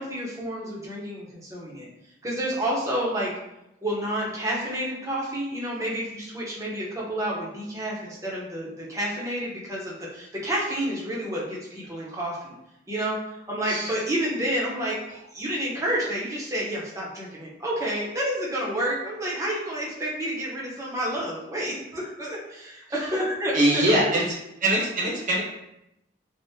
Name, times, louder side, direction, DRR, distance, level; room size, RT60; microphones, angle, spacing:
voice 1, 0.0-1.9 2.2-3.3 3.8-12.5 12.9-13.2 13.5-15.0 15.3-23.8, right 1 dB, 20° right, -5 dB, 0.7 m, -29 dB
voice 2, 23.5-24.4 24.6-25.4, right 1 dB, 45° right, -3 dB, 0.8 m, -22 dB
3.5 x 2.0 x 2.7 m, 0.86 s
head